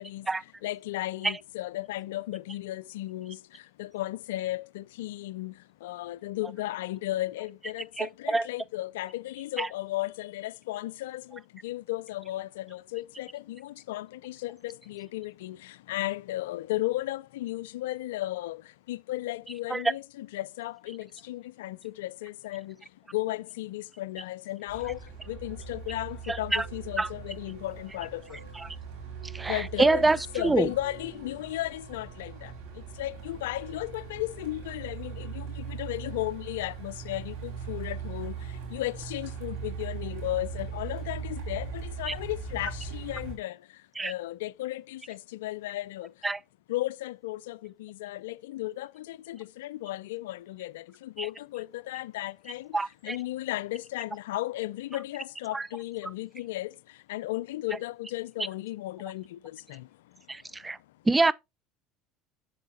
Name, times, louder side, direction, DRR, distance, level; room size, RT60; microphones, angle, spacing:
voice 1, 0.0-28.5 29.4-46.3 46.7-52.8 53.0-60.9, left 16 dB, 80° left, 0.3 m, -35 dB
voice 2, 8.0-8.5 9.6-9.7 19.7-19.8 26.3-26.6 27.0-27.1 28.6-28.7 29.3-30.2 30.4-30.7 42.1-42.2 44.0-44.1 46.2-46.4 51.2-51.3 52.7-53.2 55.5-55.7 60.3-60.8 61.1-61.3, right 3 dB, 15° right, 0.5 m, -25 dB
Truck, 24.7-43.4, right 6 dB, 75° right, 2.9 m, -40 dB
7.6 x 7.1 x 2.7 m
hypercardioid pair, 80°, 0 cm